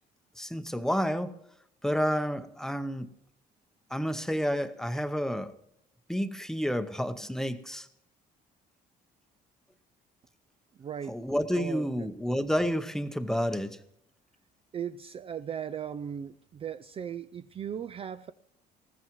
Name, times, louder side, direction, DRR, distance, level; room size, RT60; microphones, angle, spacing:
voice 1, 0.4-1.3 1.8-3.1 3.9-5.5 6.1-7.9 11.1-13.8, equal, 5° left, 0.8 m, -30 dB
voice 2, 10.8-11.2 11.6-12.1 14.7-18.3, right 8 dB, 35° right, 0.4 m, -37 dB
20.0 x 14.5 x 3.1 m
cardioid pair, 110°, 17 cm